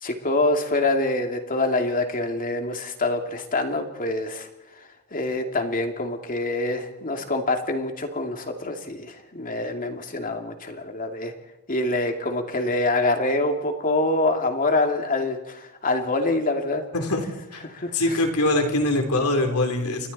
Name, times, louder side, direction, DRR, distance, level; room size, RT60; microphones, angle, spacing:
voice 1, 0.0-4.5 4.8-11.3 11.7-16.8 17.6-18.2, left 2 dB, 40° left, 4 dB, 2.5 m, -25 dB
voice 2, 16.9-17.2 17.5-17.6 17.9-20.1, left 2 dB, 80° left, 5 dB, 3.5 m, -23 dB
29.5 x 24.0 x 4.2 m, 0.99 s
head